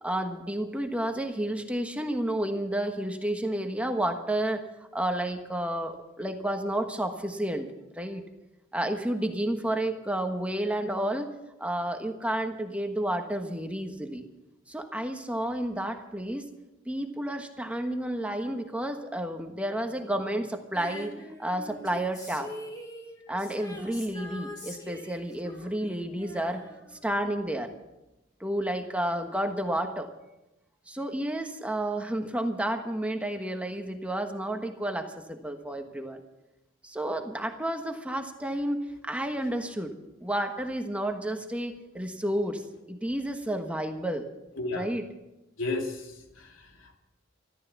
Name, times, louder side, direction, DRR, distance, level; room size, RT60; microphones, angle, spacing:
voice 1, 0.0-4.6 4.9-8.3 8.7-11.3 11.6-14.2 14.7-16.5 16.8-21.1 21.4-22.5 23.3-26.7 27.0-27.7 28.4-30.1 30.9-36.2 36.8-38.8 39.0-42.6 42.9-44.2 44.7-45.1, right 1 dB, 5° right, 5 dB, 1.3 m, -31 dB
Female singing, 20.7-27.4 27.6-27.7, left 1 dB, 20° left, 3.6 m, -43 dB
voice 2, 44.6-44.9 45.6-47.0, left 3 dB, 85° left, 2 dB, 2.8 m, -34 dB
14.0 x 14.0 x 7.1 m, 0.95 s
head